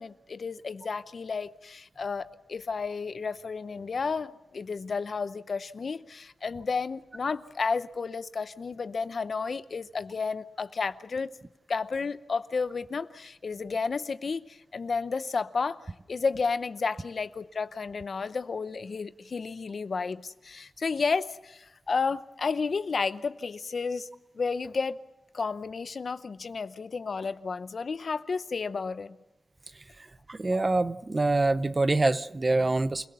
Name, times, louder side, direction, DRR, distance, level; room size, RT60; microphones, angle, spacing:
voice 1, 0.0-11.3 11.7-15.8 16.1-24.1 24.4-25.0 25.3-29.2, left 4 dB, 60° left, 0.8 m, -32 dB
voice 2, 30.3-33.1, right 2 dB, 30° right, 0.8 m, -25 dB
28.5 x 17.0 x 6.9 m
wide cardioid pair, 85°, 0 cm